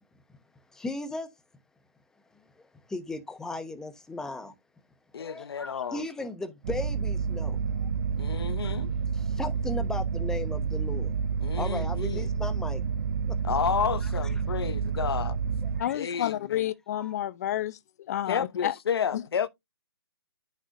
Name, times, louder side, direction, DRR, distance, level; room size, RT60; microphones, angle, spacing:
voice 1, 0.7-1.3 2.9-4.5 5.2-7.6 9.1-11.1 11.6-12.8 13.3-13.4 15.8-16.0 16.9-17.2, left 2 dB, 5° left, 0.9 m, -36 dB
voice 2, 5.1-6.0 8.2-8.9 11.4-12.3 13.4-15.4 15.9-16.6 18.3-19.5, left 7 dB, 70° left, 0.9 m, -31 dB
sound 1, 6.6-15.8, right 6 dB, 45° right, 0.6 m, -29 dB
voice 3, 15.8-17.8 18.1-18.7 19.1-19.2, left 12 dB, 40° left, 0.7 m, -30 dB
9.7 x 6.4 x 2.6 m
hypercardioid pair, 155°, 13 cm